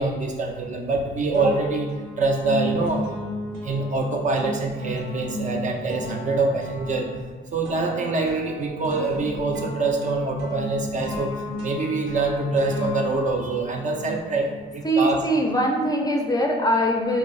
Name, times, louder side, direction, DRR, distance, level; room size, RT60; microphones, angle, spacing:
voice 1, 0.0-3.1 3.6-7.1 7.5-15.2, right 3 dB, 40° right, 2 dB, 0.4 m, -25 dB
sound 1, 0.6-1.0 1.3-14.8, equal, 80° right, 0.8 m, -34 dB
voice 2, 14.8-17.2, equal, 20° left, 1 dB, 0.4 m, -22 dB
2.6 x 2.3 x 4.1 m, 1.3 s
cardioid pair, 90°, 20 cm